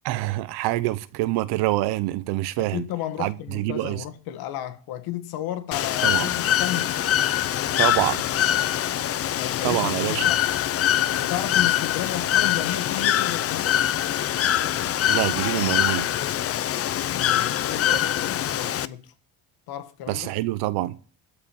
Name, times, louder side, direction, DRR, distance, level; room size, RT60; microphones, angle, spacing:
voice 1, 0.0-2.8 3.2-4.0 6.0-6.3 7.8-8.2 9.6-10.3 15.1-16.1 20.1-21.0, right 17 dB, 85° right, 0.9 m, -26 dB
voice 2, 2.6-7.0 9.3-10.4 11.2-13.8 17.1-19.1 19.7-20.3, left 12 dB, 70° left, 1.8 m, -33 dB
Bird / Water, 5.7-18.9, left 11 dB, 40° left, 0.6 m, -24 dB
13.0 x 5.0 x 9.0 m
cardioid pair, 140°, 38 cm